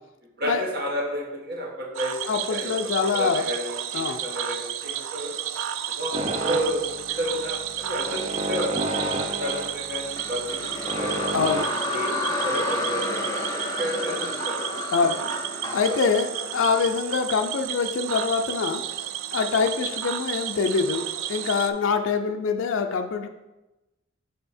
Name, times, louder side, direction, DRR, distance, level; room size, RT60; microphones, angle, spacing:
voice 1, 0.4-5.3 6.0-6.2 6.5-8.8 9.2-11.3 11.8-14.7 15.9-16.0, equal, 50° right, -2 dB, 1.4 m, -31 dB
Cricket / Frog, 1.9-21.7, right 10 dB, 85° right, 0.3 m, -32 dB
voice 2, 2.3-3.5 3.9-4.2 11.3-11.7 14.9-15.3 15.7-18.8 19.3-23.3, left 5 dB, 75° left, 5 dB, 0.4 m, -25 dB
sound 1, 6.1-11.6, right 1 dB, 30° right, 0.5 m, -31 dB
sound 2, 10.2-17.3, left 2 dB, 15° left, 0.6 m, -31 dB
6.7 x 3.4 x 4.2 m, 1.0 s
head